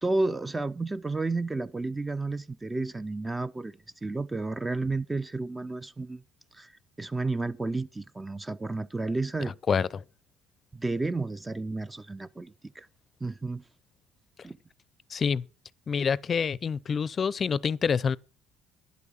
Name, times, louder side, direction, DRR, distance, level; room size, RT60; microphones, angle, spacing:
voice 1, 0.0-3.7 4.0-6.2 6.5-6.7 7.0-9.5 10.7-12.9 13.2-13.6 14.4-14.6, right 3 dB, 15° right, 0.5 m, -31 dB
voice 2, 9.7-10.0 15.1-15.4 15.9-18.2, left 6 dB, 40° left, 0.5 m, -27 dB
10.5 x 8.5 x 7.1 m
supercardioid pair, 95°, 0 cm